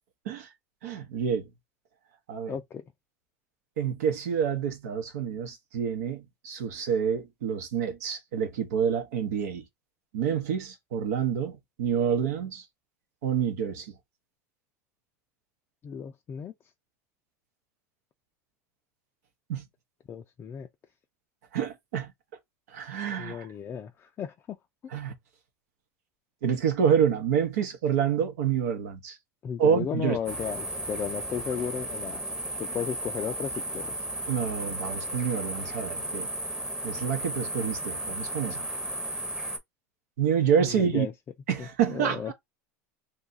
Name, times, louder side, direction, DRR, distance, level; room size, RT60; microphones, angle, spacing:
voice 1, 0.8-1.5 2.3-2.6 3.8-9.6 10.1-12.6 13.2-13.9 19.5-19.6 21.5-22.1 22.7-23.5 24.9-25.1 26.4-29.2 29.6-30.2 34.3-36.3 36.8-38.7 40.2-41.1 41.5-42.3, right 8 dB, 85° right, 0.9 m, -28 dB
voice 2, 2.5-2.8 15.8-16.5 20.1-20.7 23.2-24.6 29.4-32.2 32.6-33.9 40.6-41.1 41.6-42.3, left 8 dB, 25° left, 0.3 m, -34 dB
sound 1, 30.3-39.6, right 1 dB, 10° right, 0.8 m, -34 dB
2.6 x 2.3 x 4.0 m
supercardioid pair, 130°, 8 cm